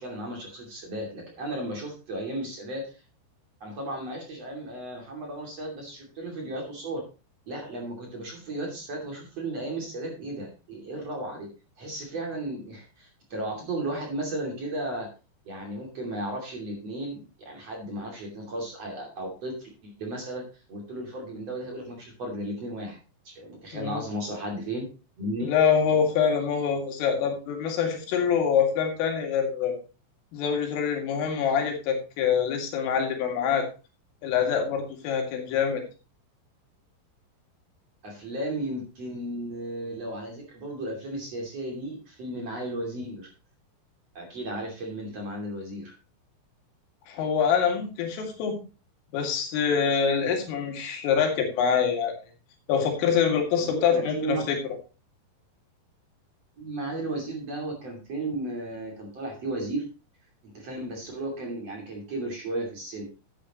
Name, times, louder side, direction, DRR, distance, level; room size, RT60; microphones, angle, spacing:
voice 1, 0.0-3.0 3.6-7.0 7.5-11.5 11.8-15.1 15.4-20.4 20.7-23.0 23.2-24.9 25.2-25.5 38.0-43.3 44.1-45.9 53.6-54.5 56.6-59.9 60.5-63.1, right 1 dB, 40° right, 0 dB, 3.1 m, -34 dB
voice 2, 25.4-29.8 30.3-33.7 34.2-35.8 47.1-48.6 49.1-52.1 52.7-54.6, left 7 dB, 90° left, 3 dB, 4.8 m, -25 dB
13.0 x 8.5 x 3.0 m, 0.32 s
omnidirectional pair, 5.6 m